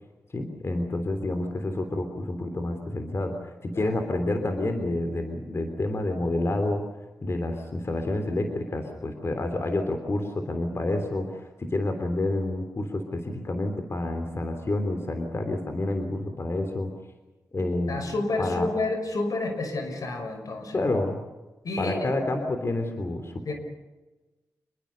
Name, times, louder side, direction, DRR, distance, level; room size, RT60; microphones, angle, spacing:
voice 1, 0.3-6.8 7.2-16.9 17.5-18.0 18.4-18.7 20.7-21.2 21.8-23.5, left 2 dB, 45° left, 6 dB, 3.5 m, -29 dB
voice 2, 17.9-21.0 21.6-22.1 23.5-23.6, left 2 dB, 75° left, 5 dB, 5.8 m, -30 dB
27.5 x 21.5 x 6.9 m, 1.2 s
cardioid pair, 70°, 6 cm